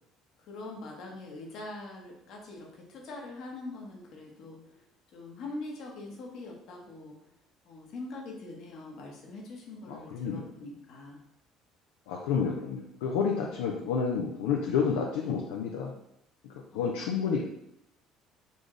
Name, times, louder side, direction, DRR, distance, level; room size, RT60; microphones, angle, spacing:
voice 1, 0.4-4.8 5.1-7.2 7.7-11.2 16.7-17.2, left 2 dB, 65° left, 0 dB, 1.2 m, -43 dB
voice 2, 9.9-10.5 12.1-15.9 16.4-17.4, left 6 dB, 80° left, 0 dB, 0.5 m, -30 dB
4.2 x 3.5 x 3.2 m, 0.78 s
hypercardioid pair, 65°, 0 cm